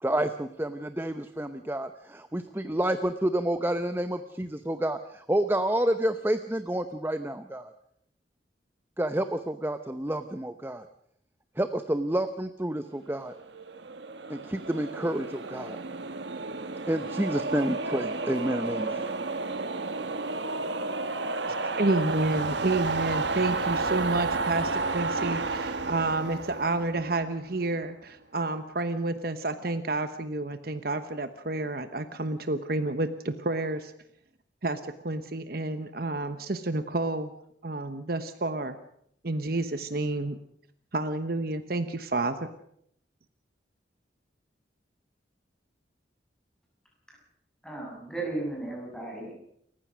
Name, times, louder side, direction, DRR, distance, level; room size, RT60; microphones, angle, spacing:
voice 1, 0.0-7.7 9.0-10.9 11.6-13.3 14.3-15.8 16.9-19.1, right 1 dB, 10° right, 9 dB, 0.7 m, -29 dB
sound 1, 13.4-27.7, right 3 dB, 70° right, 1.4 m, -32 dB
voice 2, 21.8-33.9 34.6-37.3 37.6-38.8 39.2-40.4 40.9-42.5, right 2 dB, 50° right, 10 dB, 1.1 m, -30 dB
voice 3, 47.6-49.3, right 2 dB, 5° left, -2 dB, 7.5 m, -35 dB
29.0 x 15.0 x 6.2 m, 0.70 s
head